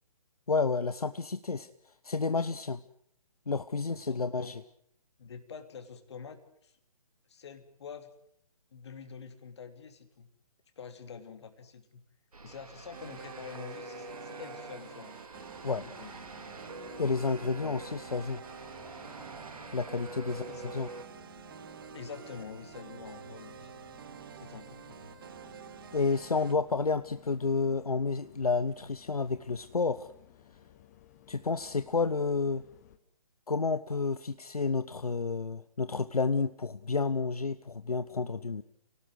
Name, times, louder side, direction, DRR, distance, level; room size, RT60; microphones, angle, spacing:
voice 1, 0.5-1.7 2.0-2.8 3.5-4.6 15.6-15.8 17.0-18.4 19.7-20.9 25.9-30.1 31.3-32.6 33.5-38.6, left 4 dB, 70° left, 12 dB, 0.9 m, -30 dB
voice 2, 3.9-4.6 5.2-6.7 7.3-8.1 8.7-10.3 10.8-12.0 12.4-15.2 15.8-16.2 17.6-17.8 20.5-20.7 21.9-23.7 24.3-25.1, left 6 dB, 45° left, 8 dB, 2.9 m, -47 dB
sound 1, 12.3-21.0, right 2 dB, 65° right, 3.3 m, -46 dB
sound 2, 12.9-26.6, right 8 dB, 35° right, 0.9 m, -48 dB
sound 3, 15.3-33.0, left 11 dB, 25° left, 1.3 m, -57 dB
28.0 x 18.5 x 7.9 m, 0.68 s
figure-of-eight pair, 135°, 20 cm